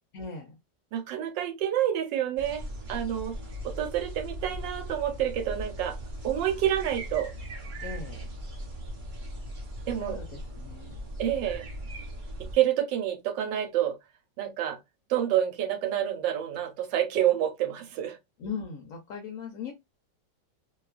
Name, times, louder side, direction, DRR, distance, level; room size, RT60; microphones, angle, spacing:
voice 1, 0.1-0.5 7.8-8.2 9.9-11.0 18.4-19.7, left 5 dB, 65° left, 0.9 m, -39 dB
voice 2, 0.9-3.4 3.6-6.0 6.2-7.3 9.9-10.2 11.2-11.6 12.4-14.0 14.4-14.8 15.1-18.2, right 11 dB, 80° right, 1.4 m, -28 dB
sound 1, 2.4-12.6, equal, 55° right, 0.5 m, -39 dB
2.9 x 2.3 x 2.3 m
omnidirectional pair, 2.0 m